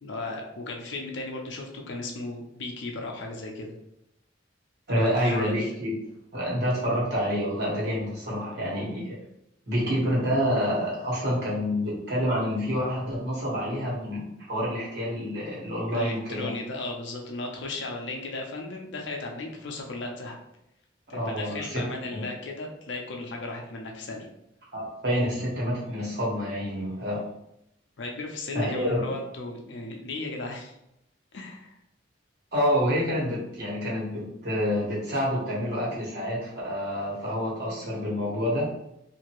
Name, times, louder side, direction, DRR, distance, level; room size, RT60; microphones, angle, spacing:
voice 1, 0.0-3.7 4.9-5.7 15.9-20.4 21.1-24.3 28.0-30.7 31.3-31.7, left 2 dB, 65° left, 1 dB, 0.5 m, -36 dB
voice 2, 4.9-6.0 6.3-9.2 9.7-16.5 21.1-21.8 22.1-22.2 24.7-27.2 28.5-29.1 32.5-38.7, equal, 55° right, -6 dB, 1.3 m, -28 dB
2.7 x 2.5 x 3.0 m, 0.82 s
head